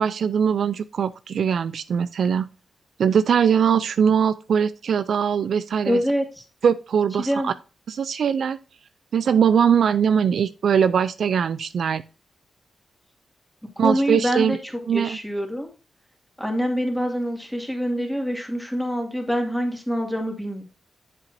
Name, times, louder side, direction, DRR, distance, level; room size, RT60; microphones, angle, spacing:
voice 1, 0.0-2.5 3.0-6.0 6.6-7.5 7.9-8.6 9.1-12.0 13.8-14.6 14.9-15.2, right 7 dB, 70° right, 14 dB, 0.4 m, -21 dB
voice 2, 5.8-6.4 7.2-7.5 13.8-15.7 16.4-20.6, equal, ahead, 2 dB, 2.2 m, -25 dB
7.7 x 7.5 x 2.7 m, 0.32 s
cardioid pair, 95°, 0 cm